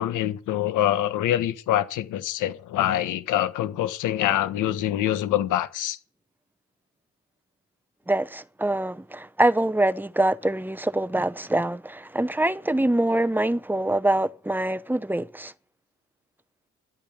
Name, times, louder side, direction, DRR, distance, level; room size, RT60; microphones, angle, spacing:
voice 1, 0.0-6.0, left 12 dB, 85° left, 1.4 m, -25 dB
voice 2, 8.1-15.5, right 1 dB, 5° right, 0.7 m, -24 dB
12.0 x 8.9 x 9.0 m
cardioid pair, 90°, 30 cm